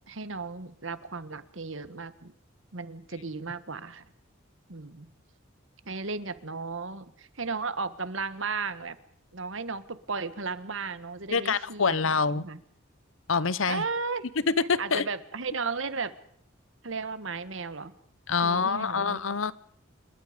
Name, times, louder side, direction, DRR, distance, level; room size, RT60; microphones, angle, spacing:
voice 1, 0.1-2.3 2.7-4.0 4.7-5.1 5.8-9.0 9.3-12.6 13.7-14.2 14.8-16.1 16.8-17.9 18.4-19.2, right 4 dB, 70° right, 1.5 m, -35 dB
voice 2, 11.3-12.4 13.3-13.8 14.5-15.1 18.3-19.5, left 5 dB, 75° left, 0.9 m, -26 dB
27.0 x 22.5 x 5.2 m
head